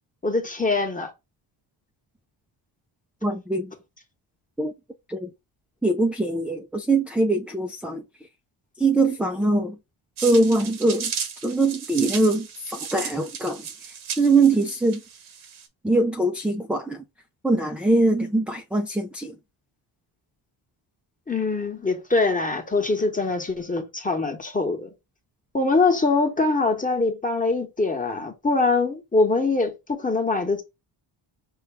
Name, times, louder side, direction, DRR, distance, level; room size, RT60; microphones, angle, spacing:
voice 1, 0.2-1.1 21.3-24.9 25.5-30.6, left 3 dB, 15° left, 1.2 m, -23 dB
voice 2, 3.2-3.7 4.6-4.7 5.1-5.3 5.8-8.0 8.8-9.8 10.2-11.1 11.4-15.0 15.8-17.0 17.4-19.4, right 2 dB, 5° right, 0.3 m, -22 dB
sound 1, 10.2-15.7, right 7 dB, 90° right, 1.2 m, -35 dB
5.6 x 2.3 x 3.5 m
cardioid pair, 95°, 49 cm